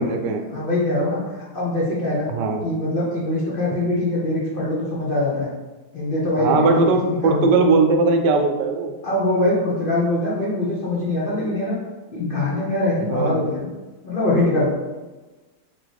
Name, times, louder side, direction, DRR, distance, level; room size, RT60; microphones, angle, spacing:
voice 1, 0.0-0.4 2.3-2.7 6.4-8.9 13.1-13.4, right 3 dB, 90° right, 4 dB, 1.2 m, -19 dB
voice 2, 0.5-2.3 2.6-5.5 5.9-7.5 9.0-11.8 12.1-13.7 14.0-14.7, left 1 dB, 40° left, -6 dB, 0.8 m, -23 dB
3.5 x 3.3 x 3.9 m, 1.2 s
omnidirectional pair, 1.8 m